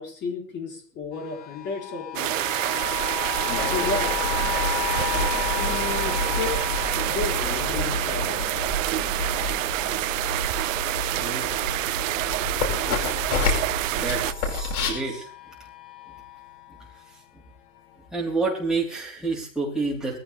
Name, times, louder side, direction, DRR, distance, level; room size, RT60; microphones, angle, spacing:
voice 1, 0.0-2.4 3.4-4.2 5.5-6.6 7.1-8.4, left 4 dB, 25° left, 2 dB, 4.0 m, -32 dB
sound 1, 1.1-12.2 12.5-17.1 17.8-17.9, left 15 dB, 45° left, 1.7 m, -36 dB
sound 2, 2.1-14.3, right 16 dB, 60° right, 0.8 m, -27 dB
sound 3, 3.5-14.9, left 4 dB, 85° left, 5.8 m, -30 dB
voice 2, 11.1-11.5 13.9-15.3 17.3-17.4 18.1-20.2, right 3 dB, ahead, -5 dB, 4.2 m, -29 dB
20.0 x 15.0 x 3.6 m, 0.43 s
supercardioid pair, 160°, 43 cm